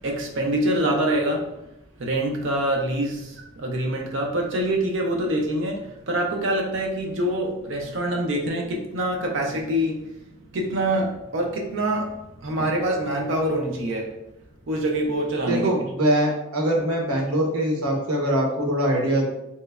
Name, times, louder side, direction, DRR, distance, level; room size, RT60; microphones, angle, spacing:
voice 1, 0.0-1.5 2.0-10.2 10.5-14.2 14.7-15.7, right 1 dB, 55° right, 0.4 m, -25 dB
voice 2, 15.5-19.3, right 1 dB, 85° right, 0.8 m, -23 dB
3.0 x 3.0 x 2.3 m
head